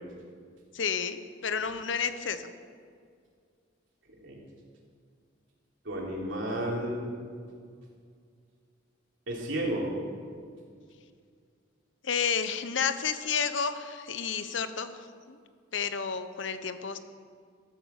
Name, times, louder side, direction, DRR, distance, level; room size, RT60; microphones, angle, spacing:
voice 1, 0.7-2.5 12.0-15.4 15.7-17.0, left 6 dB, 70° left, 11 dB, 0.8 m, -31 dB
voice 2, 5.9-7.1 9.3-9.9, right 1 dB, 75° right, -3 dB, 3.4 m, -32 dB
13.5 x 9.6 x 7.2 m, 2.1 s
head